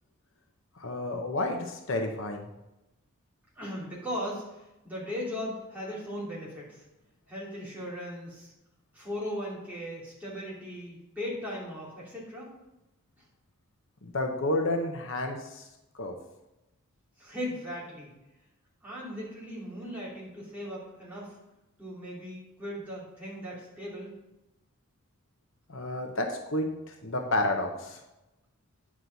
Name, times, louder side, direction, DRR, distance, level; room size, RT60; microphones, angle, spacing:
voice 1, 0.8-2.5 14.0-15.7 16.0-16.2 25.7-26.7 27.0-28.0, left 1 dB, 65° left, 3 dB, 0.9 m, -30 dB
voice 2, 3.5-6.8 7.3-8.5 8.9-12.5 17.2-18.1 18.8-21.3 21.8-24.1, equal, 10° right, -7 dB, 2.8 m, -38 dB
9.8 x 6.2 x 4.0 m, 0.96 s
head